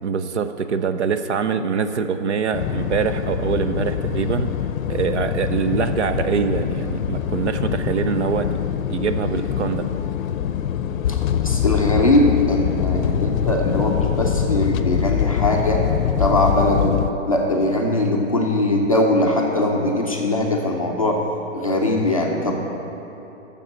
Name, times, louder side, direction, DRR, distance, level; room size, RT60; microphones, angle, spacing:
voice 1, 0.0-4.5 4.9-8.5 8.9-9.9, right 6 dB, 60° right, 10 dB, 0.6 m, -24 dB
sound 1, 2.5-17.1, left 8 dB, 90° left, 0.6 m, -24 dB
voice 2, 11.1-15.8 16.2-17.0 17.3-21.2 21.5-22.5, left 1 dB, 30° left, -1 dB, 0.5 m, -21 dB
7.5 x 6.8 x 7.1 m, 3.0 s
hypercardioid pair, 175°, 39 cm